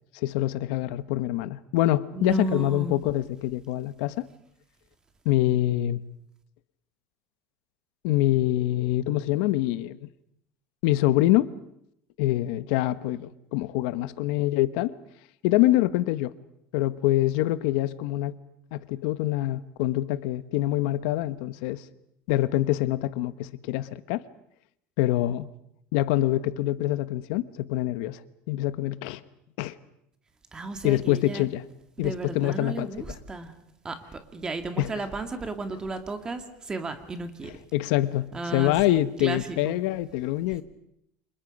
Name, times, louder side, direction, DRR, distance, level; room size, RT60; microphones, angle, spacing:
voice 1, 0.1-4.3 5.2-6.0 8.0-10.1 10.8-11.5 12.2-14.9 15.4-16.3 16.7-18.4 18.7-21.8 22.3-24.2 25.0-25.5 25.9-28.2 28.5-29.2 29.6-29.8 30.8-31.7 32.0-33.2 34.8-35.1 37.4-40.6, left 15 dB, 75° left, 14 dB, 1.1 m, -25 dB
voice 2, 2.2-3.0 30.5-31.4 32.0-33.5 33.8-36.4 36.7-37.5 38.3-39.4, right 3 dB, 15° right, 7 dB, 2.1 m, -33 dB
30.0 x 27.0 x 5.3 m, 0.76 s
cardioid pair, 165°, 5 cm